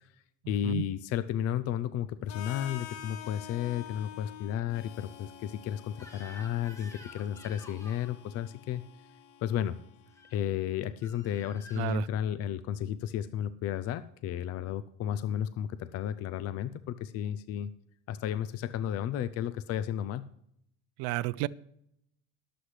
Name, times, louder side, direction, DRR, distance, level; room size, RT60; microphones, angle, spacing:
voice 1, 0.5-8.8 9.4-9.8 10.3-17.7 18.1-20.3, left 10 dB, 40° left, 14 dB, 0.5 m, -33 dB
Harmonica, 2.3-10.2, left 10 dB, 75° left, 1.3 m, -48 dB
Crying sobbing / Screech, 6.0-8.2 10.1-10.4 11.0-12.0, left 1 dB, 5° left, 2.0 m, -51 dB
voice 2, 11.8-12.1 21.0-21.5, right 18 dB, 65° right, 17 dB, 0.6 m, -31 dB
21.5 x 8.0 x 3.2 m, 0.74 s
cardioid pair, 135°, 40 cm